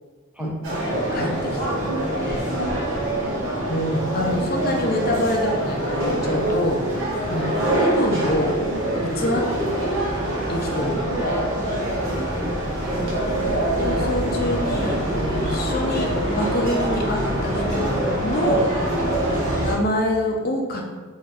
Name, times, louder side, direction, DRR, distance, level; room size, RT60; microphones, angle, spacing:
sound 1, 0.6-19.8, right 1 dB, 80° right, 1.1 m, -24 dB
voice 1, 0.8-1.3 2.1-2.5 3.7-6.8 7.3-8.5 9.2-9.5 10.5-10.9 13.8-18.0 18.2-18.6 19.6-20.8, left 1 dB, 50° left, 1 dB, 0.5 m, -26 dB
voice 2, 12.3-13.0 18.9-19.5, equal, 5° right, -2 dB, 0.5 m, -37 dB
4.5 x 2.5 x 2.4 m, 1.4 s
head